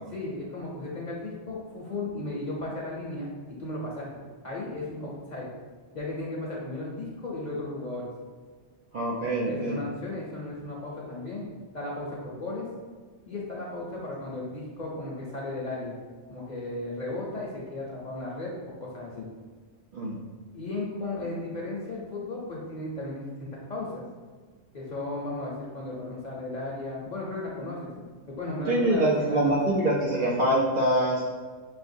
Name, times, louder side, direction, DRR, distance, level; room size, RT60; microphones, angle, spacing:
voice 1, 0.1-3.3 3.6-5.5 5.9-8.1 9.5-11.5 11.7-12.7 13.3-16.0 16.3-19.3 20.5-24.0 24.7-29.6, left 2 dB, 50° left, -4 dB, 0.6 m, -35 dB
voice 2, 8.9-9.8 19.9-20.2 28.7-31.2, right 1 dB, 55° right, -4 dB, 0.6 m, -24 dB
6.2 x 2.2 x 2.6 m, 1.5 s
omnidirectional pair, 1.3 m